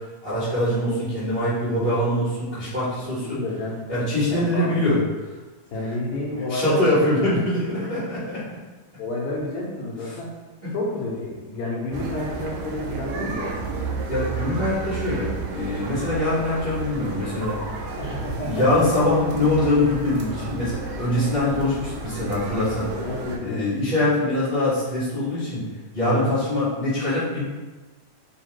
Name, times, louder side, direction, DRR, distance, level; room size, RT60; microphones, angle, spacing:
voice 1, 0.2-3.4 3.9-5.0 6.5-8.4 10.6-10.7 14.1-17.5 18.4-22.9 23.4-25.6 25.9-27.4, left 1 dB, 70° right, -13 dB, 0.5 m, -23 dB
voice 2, 3.0-3.9 4.5-4.8 5.7-7.5 9.0-10.4 10.7-13.7 18.0-18.7 22.9-23.7 26.0-26.3, left 2 dB, 80° left, -2 dB, 2.0 m, -30 dB
sound 1, 11.9-23.4, right 4 dB, 90° right, 2.2 m, -32 dB
4.9 x 2.4 x 3.0 m, 1.2 s
omnidirectional pair, 3.6 m